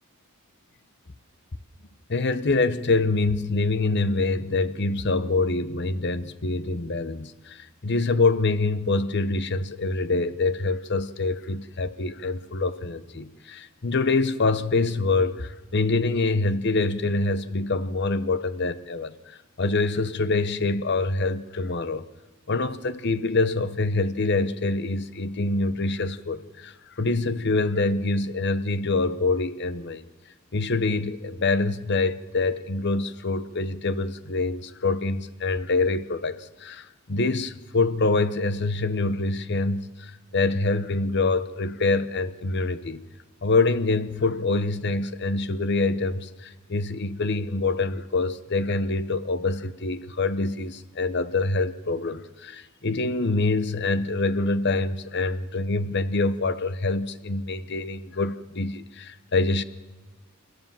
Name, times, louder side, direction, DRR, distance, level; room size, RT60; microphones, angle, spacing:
voice 1, 2.1-22.0 22.5-30.0 30.5-43.0 43.4-59.6, left 3 dB, 50° left, 0.9 m, -25 dB
29.5 x 13.5 x 7.5 m
head